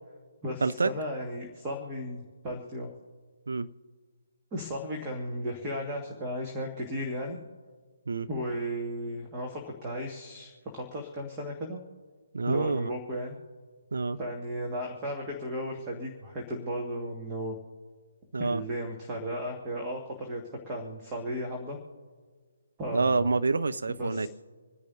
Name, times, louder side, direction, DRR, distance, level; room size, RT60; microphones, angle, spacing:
voice 1, 0.4-2.9 4.5-7.4 8.3-11.8 12.5-13.4 14.2-17.6 18.4-21.8 22.8-23.3 24.0-24.3, equal, 15° right, 1.8 m, -35 dB
voice 2, 12.3-12.9 13.9-14.2 18.3-18.6 22.9-24.3, right 3 dB, 60° right, 0.6 m, -27 dB
27.0 x 10.5 x 2.7 m
figure-of-eight pair, 140°, 0 cm